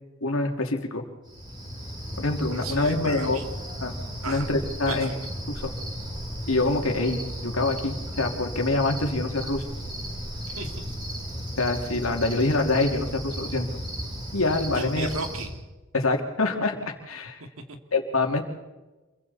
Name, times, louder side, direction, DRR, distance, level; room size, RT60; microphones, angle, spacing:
voice 1, 0.2-1.0 2.2-3.4 3.8-3.9 4.3-5.1 5.5-5.7 6.5-9.6 11.6-13.8 14.3-15.1 15.9-16.8 17.1-17.4 17.9-18.4, left 2 dB, 75° left, 3 dB, 2.6 m, -25 dB
Cricket, 1.2-15.5, equal, 20° right, 7.5 m, -35 dB
voice 2, 2.5-3.5 4.2-4.5 4.9-5.2 10.5-10.9 14.7-15.6 17.4-17.8, right 3 dB, 85° right, 5 dB, 2.5 m, -35 dB
27.5 x 23.0 x 4.2 m, 1.2 s
head